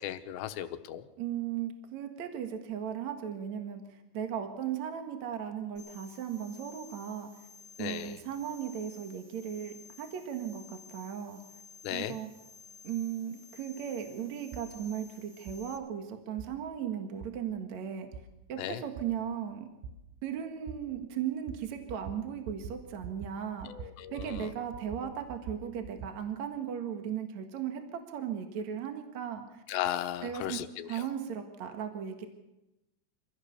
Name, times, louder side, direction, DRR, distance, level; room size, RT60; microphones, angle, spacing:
voice 1, 0.0-1.0 7.8-8.1 11.8-12.2 18.6-18.8 23.6-24.5 29.7-31.1, left 12 dB, 85° left, 9 dB, 3.1 m, -36 dB
voice 2, 1.2-7.3 7.8-11.4 11.9-12.3 12.8-18.1 18.5-19.7 20.2-23.7 24.1-29.6 30.2-30.6 30.9-32.3, right 9 dB, 55° right, 6 dB, 2.3 m, -37 dB
sound 1, 5.8-15.8, left 4 dB, 25° right, 8.6 m, -54 dB
sound 2, 14.5-14.7 15.5-15.6 16.4-16.5 17.2-17.3 18.1-18.2 19.0-19.1 19.8-19.9 20.7-20.8 21.5-21.6 21.9-22.2 22.5-22.8 23.0-23.3 23.6-24.5 24.7-26.1, right 6 dB, 80° right, 4.1 m, -43 dB
25.5 x 16.5 x 6.7 m, 0.95 s
omnidirectional pair, 5.0 m